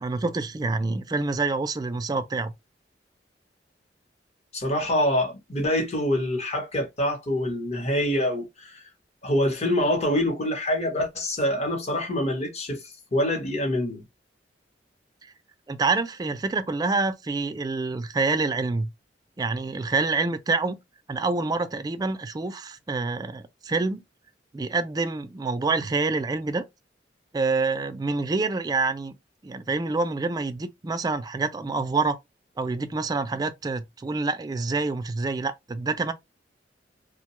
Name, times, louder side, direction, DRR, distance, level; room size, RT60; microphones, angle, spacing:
voice 1, 0.0-2.5 15.7-18.9 19.4-20.8 21.1-24.0 24.5-26.6 27.3-29.2 29.4-32.2 32.6-36.1, right 3 dB, 20° right, 0.3 m, -27 dB
voice 2, 4.5-8.8 9.2-12.8 13.1-14.0, left 1 dB, 40° left, 0.9 m, -25 dB
2.6 x 2.1 x 2.9 m
head